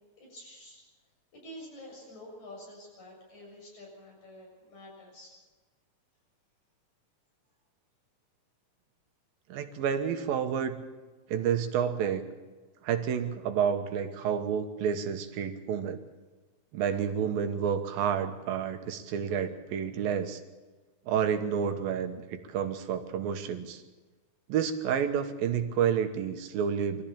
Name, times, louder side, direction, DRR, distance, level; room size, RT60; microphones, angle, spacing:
voice 1, 0.2-0.8 1.3-5.3, left 1 dB, 55° left, -2 dB, 8.8 m, -48 dB
voice 2, 9.5-10.8 11.3-12.2 12.8-16.0 16.7-20.4 21.1-23.8 24.5-27.0, right 8 dB, 85° right, 7 dB, 3.1 m, -30 dB
24.0 x 14.5 x 8.7 m, 1.3 s
omnidirectional pair, 4.0 m